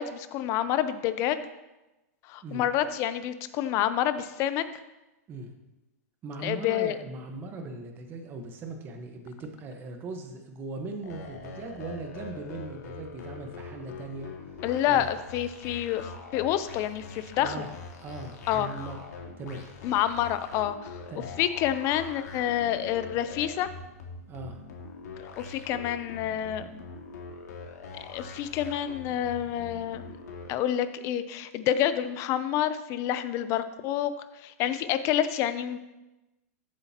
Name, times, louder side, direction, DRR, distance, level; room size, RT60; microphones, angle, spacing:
voice 1, 0.0-1.4 2.3-4.6 6.4-7.0 14.6-17.5 18.5-18.7 19.8-20.9 21.4-23.7 25.4-26.7 28.1-30.1 30.5-34.1 34.4-35.8, left 11 dB, 35° left, 12 dB, 0.6 m, -28 dB
voice 2, 6.2-14.3 14.9-15.1 17.4-17.7 18.0-19.1 19.4-19.7 21.1-21.4 23.1-23.2 24.3-24.6, right 3 dB, 25° right, 4 dB, 1.2 m, -39 dB
sound 1, 11.0-30.6, left 4 dB, 80° left, 2.0 m, -43 dB
14.0 x 7.9 x 3.0 m, 1.0 s
hypercardioid pair, 145°, 9 cm